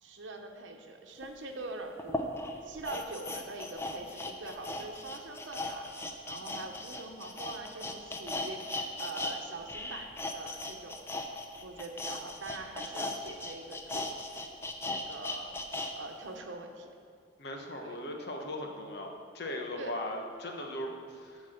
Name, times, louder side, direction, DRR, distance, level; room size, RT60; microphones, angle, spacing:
voice 1, 0.0-2.3 2.6-5.9 6.2-8.7 9.0-11.1 11.6-14.0 14.8-15.5 15.9-16.9 17.8-18.0 19.8-20.0, right 2 dB, 80° right, 3 dB, 1.0 m, -43 dB
sound 1, 1.2-1.3 2.0-9.4 9.6-15.9 16.3-16.4, left 2 dB, 15° left, 0.6 m, -38 dB
voice 2, 17.4-19.1 19.3-21.4, left 1 dB, 55° left, 2 dB, 1.1 m, -38 dB
10.0 x 4.7 x 7.7 m, 2.5 s
head